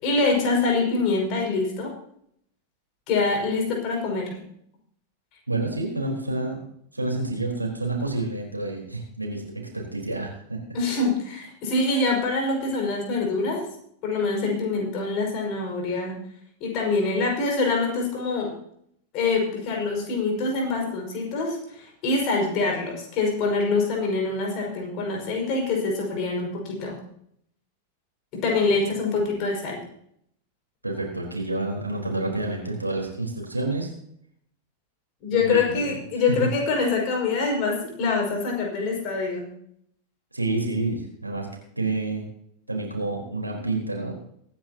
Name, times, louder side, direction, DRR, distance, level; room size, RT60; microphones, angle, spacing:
voice 1, 0.0-1.9 3.1-4.4 10.7-13.6 14.0-16.2 16.6-18.5 19.1-27.0 28.3-29.8 35.2-39.5, left 3 dB, 40° left, 0 dB, 5.6 m, -25 dB
voice 2, 5.5-6.6 6.9-10.6 30.8-33.9 35.3-35.8 40.3-41.5 41.8-42.2 42.7-44.1, right 2 dB, 85° right, -1 dB, 4.1 m, -28 dB
23.5 x 10.5 x 2.9 m, 0.69 s
figure-of-eight pair, 90°, 0 cm